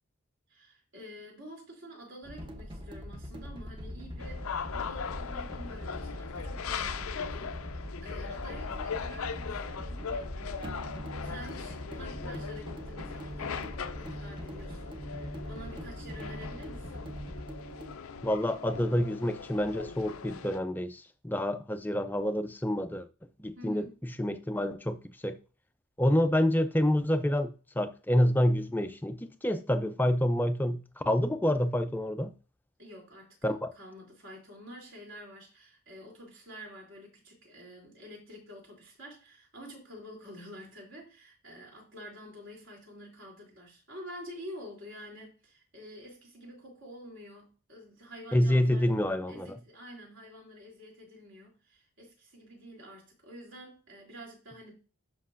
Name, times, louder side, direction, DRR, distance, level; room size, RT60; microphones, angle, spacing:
voice 1, 0.5-10.9 11.2-17.2 23.5-24.0 32.8-33.3 33.7-48.9 49.3-54.7, equal, 60° right, 3.0 m, -48 dB
sound 1, 2.2-18.0, equal, 20° right, 0.8 m, -41 dB
sound 2, 4.2-20.6, left 6 dB, 80° left, 0.5 m, -40 dB
voice 2, 18.2-23.1 23.4-23.9 24.2-25.0 25.2-25.4 26.0-32.3 33.4-33.7 48.3-49.6, left 1 dB, 10° left, 0.4 m, -28 dB
11.0 x 5.3 x 2.5 m
head